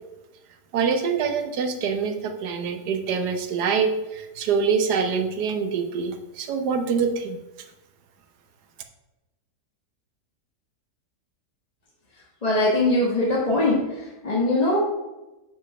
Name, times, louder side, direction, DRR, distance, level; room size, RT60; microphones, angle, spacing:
voice 1, 0.7-7.4, right 5 dB, 75° right, 6 dB, 1.4 m, -25 dB
voice 2, 12.4-14.8, left 2 dB, 25° left, -6 dB, 1.3 m, -22 dB
6.0 x 5.0 x 5.2 m, 1.0 s
omnidirectional pair, 1.8 m